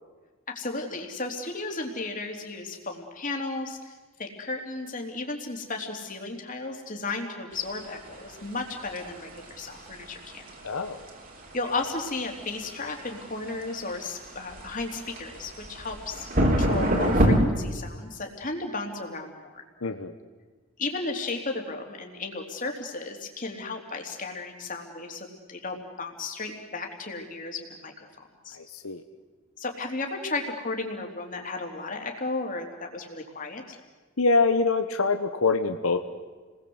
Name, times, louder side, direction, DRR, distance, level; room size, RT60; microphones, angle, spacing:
voice 1, 0.5-3.9 4.2-10.5 11.5-19.6 20.8-28.6 29.6-33.6, left 3 dB, 40° left, 3 dB, 3.5 m, -34 dB
sound 1, 7.6-17.4, equal, 40° right, 3.6 m, -28 dB
voice 2, 10.6-11.0 19.8-20.1 28.5-29.0 34.2-36.0, left 4 dB, 85° left, 7 dB, 1.2 m, -25 dB
30.0 x 20.5 x 8.0 m, 1.3 s
head